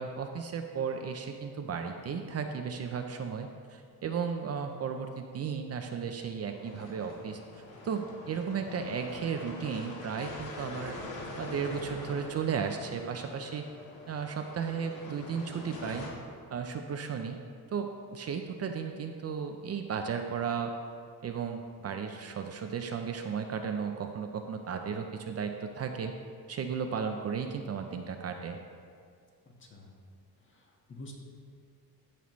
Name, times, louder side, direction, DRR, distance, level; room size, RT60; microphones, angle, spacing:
voice 1, 0.0-7.4 7.8-11.0 11.4-13.6 14.1-16.1 16.5-17.4 17.7-20.7 21.2-26.1 26.5-28.6, right 6 dB, 40° right, 5 dB, 0.6 m, -35 dB
sound 1, 6.5-16.1, left 2 dB, 75° left, 1.8 m, -44 dB
voice 2, 29.4-29.9 30.4-31.1, left 1 dB, 35° left, 0 dB, 1.4 m, -49 dB
14.5 x 5.5 x 3.1 m, 2.2 s
cardioid pair, 130°, 37 cm